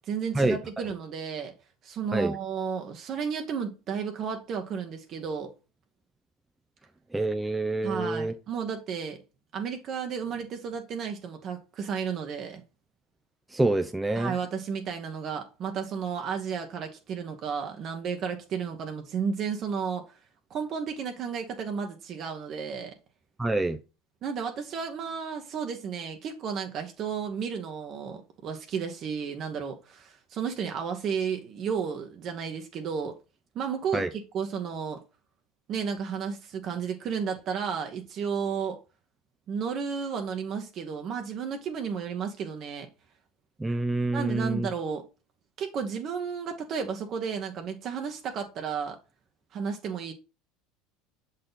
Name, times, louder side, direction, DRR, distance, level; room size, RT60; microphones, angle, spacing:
voice 1, 0.1-1.5 1.8-5.5 7.8-9.2 9.5-12.6 14.1-20.1 20.5-22.9 24.2-33.1 33.5-35.0 35.7-38.8 39.5-42.9 44.1-45.0 45.6-49.0 49.5-50.1, right 6 dB, 50° right, 1.0 m, -33 dB
voice 2, 7.1-8.3 13.5-14.3 23.4-23.8 33.9-34.1 43.6-44.7, right 2 dB, 10° right, 0.5 m, -26 dB
6.4 x 4.1 x 3.9 m
hypercardioid pair, 85°, 0 cm